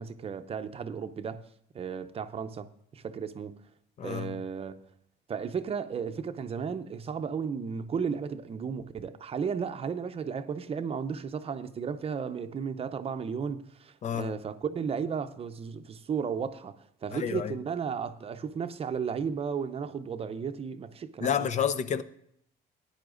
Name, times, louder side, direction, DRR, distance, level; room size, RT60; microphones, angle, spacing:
voice 1, 0.0-1.4 1.7-2.7 2.9-3.5 4.0-4.8 5.3-16.8 17.0-21.5, right 6 dB, 35° right, 0.6 m, -34 dB
voice 2, 4.0-4.3 14.0-14.3 17.1-17.5 21.2-22.0, left 8 dB, 45° left, 0.6 m, -29 dB
15.5 x 10.0 x 2.5 m
cardioid pair, 110°, 17 cm